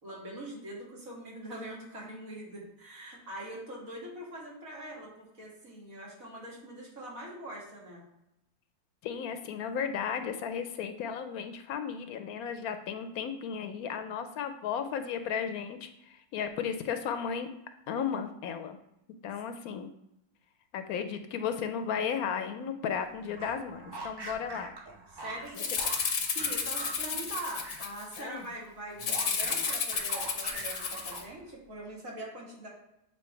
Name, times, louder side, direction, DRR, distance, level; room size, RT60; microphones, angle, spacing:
voice 1, 0.0-8.0 25.1-25.7 26.3-32.7, right 1 dB, 65° right, -3 dB, 2.1 m, -43 dB
voice 2, 9.0-17.5 17.9-18.8 19.2-19.9 20.7-24.7 28.2-28.5, left 7 dB, 80° left, 9 dB, 1.1 m, -34 dB
sound 1, 23.2-27.9 28.2-31.5, right 2 dB, 30° right, 0.5 m, -44 dB
Rattle (instrument), 25.6-28.2 29.0-31.2, left 5 dB, 55° left, 0.8 m, -32 dB
7.6 x 2.8 x 4.4 m, 0.84 s
omnidirectional pair, 1.6 m